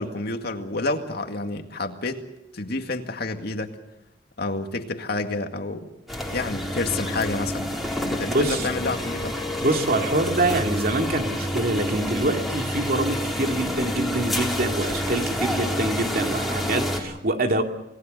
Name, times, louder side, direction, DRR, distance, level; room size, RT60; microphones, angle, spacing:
voice 1, 0.0-2.2 2.5-3.8 4.4-5.9 6.3-9.4, left 2 dB, 60° left, 5 dB, 2.1 m, -29 dB
sound 1, 6.1-17.0, equal, ahead, 3.9 m, -28 dB
voice 2, 8.3-8.7 9.6-17.6, right 2 dB, 55° right, 4 dB, 2.5 m, -25 dB
27.5 x 19.0 x 6.7 m, 0.87 s
head